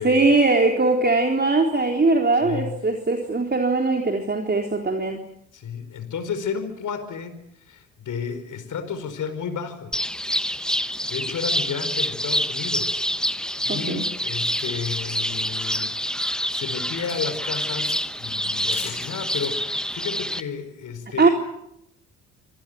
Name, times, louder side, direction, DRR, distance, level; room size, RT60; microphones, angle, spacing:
voice 1, 0.0-5.2 13.7-14.0 21.2-21.3, right 3 dB, 25° right, 3 dB, 3.8 m, -20 dB
voice 2, 2.4-2.7 5.5-9.9 10.8-13.0 13.3-15.9 16.3-21.3, left 6 dB, 50° left, 9 dB, 4.8 m, -32 dB
sound 1, 9.9-20.4, equal, ahead, 1.2 m, -27 dB
sound 2, 14.5-16.3 16.6-18.2 18.5-19.5, left 10 dB, 75° left, 5.1 m, -42 dB
26.0 x 20.0 x 9.2 m, 0.80 s
hypercardioid pair, 50°, 38 cm